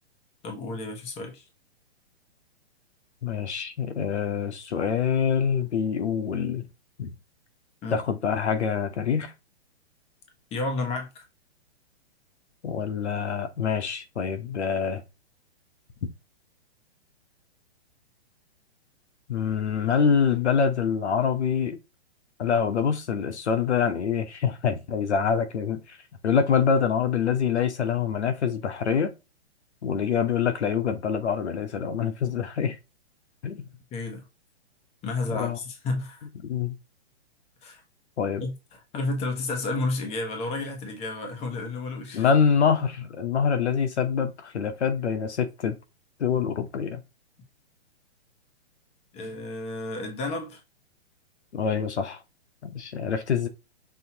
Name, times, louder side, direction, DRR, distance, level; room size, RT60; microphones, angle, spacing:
voice 1, 0.4-1.4 7.8-8.0 10.5-11.2 33.9-34.2 35.0-36.3 37.6-37.8 38.4-42.2 49.1-50.6, left 2 dB, 20° left, 1.2 m, -31 dB
voice 2, 3.2-6.7 7.0-7.1 7.9-9.3 12.6-15.0 19.3-21.8 22.4-26.0 26.2-29.1 29.8-32.8 33.4-33.6 35.3-35.6 36.4-36.7 38.2-38.4 42.1-45.7 46.2-47.0 51.5-52.2 52.6-53.5, left 7 dB, 90° left, 1.1 m, -25 dB
6.0 x 2.7 x 2.9 m
hypercardioid pair, 145°, 33 cm